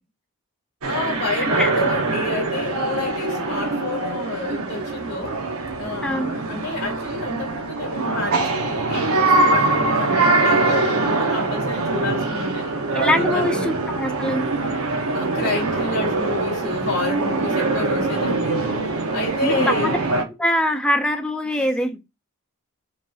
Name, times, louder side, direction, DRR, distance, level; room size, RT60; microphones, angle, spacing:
sound 1, 0.8-20.2, right 2 dB, 85° right, 0.8 m, -23 dB
voice 1, 0.9-5.3 5.8-12.7 13.1-13.8 15.1-20.0 21.5-21.7, left 2 dB, 60° left, 2.0 m, -29 dB
voice 2, 12.9-14.5 19.4-20.0 20.4-21.9, left 1 dB, 5° left, 0.5 m, -23 dB
5.1 x 2.9 x 2.4 m
head